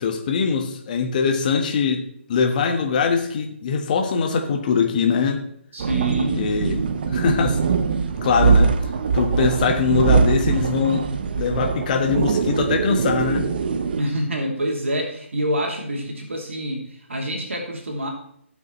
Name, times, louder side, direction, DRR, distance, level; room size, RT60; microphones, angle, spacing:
voice 1, 0.0-2.0 2.3-5.4 6.3-7.7 8.2-8.7 9.1-11.1 11.3-13.5, left 5 dB, 40° left, 3 dB, 1.3 m, -22 dB
voice 2, 5.7-6.4 14.0-18.1, right 1 dB, 75° right, 0 dB, 2.5 m, -26 dB
sound 1, 5.8-14.0, right 5 dB, 45° right, 0.8 m, -22 dB
16.0 x 6.0 x 3.1 m, 0.69 s
figure-of-eight pair, 150°, 7 cm